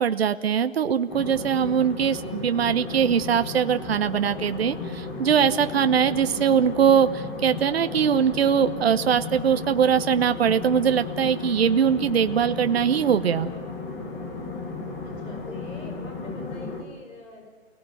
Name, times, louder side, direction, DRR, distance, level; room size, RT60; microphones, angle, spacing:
voice 1, 0.0-13.5, right 8 dB, 50° right, 10 dB, 1.0 m, -22 dB
sound 1, 1.1-16.8, left 3 dB, 5° left, 0.9 m, -34 dB
voice 2, 15.0-17.5, left 2 dB, 80° left, 4 dB, 4.8 m, -44 dB
29.5 x 18.0 x 7.8 m, 1.5 s
hypercardioid pair, 165°, 39 cm